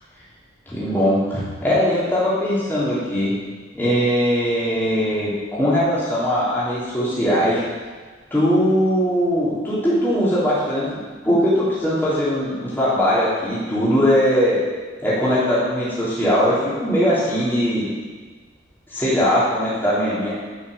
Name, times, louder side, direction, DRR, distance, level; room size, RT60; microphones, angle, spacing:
voice 1, 0.7-3.3 3.7-7.6 8.3-10.9 11.2-14.6 15.0-17.9 18.9-20.3, equal, 10° left, -9 dB, 3.1 m, -20 dB
11.0 x 6.3 x 6.7 m, 1.4 s
head